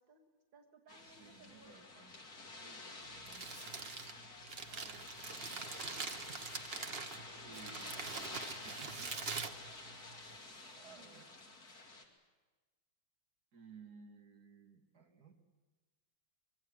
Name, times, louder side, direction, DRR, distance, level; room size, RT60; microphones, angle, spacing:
voice 1, 0.0-1.7 4.7-6.5 8.6-9.2 10.1-10.5 10.9-11.5, right 6 dB, 80° right, 1 dB, 2.4 m, -64 dB
sound 1, 0.9-12.0, left 2 dB, 50° left, 3.2 m, -50 dB
voice 2, 1.0-3.8 7.2-9.1 10.7-11.3 13.5-15.3, right 5 dB, 55° right, 1 dB, 2.8 m, -59 dB
Crumpling crinkling, 3.0-10.4, right 5 dB, 35° right, 1.1 m, -44 dB
25.0 x 23.0 x 7.9 m, 1.2 s
omnidirectional pair, 2.1 m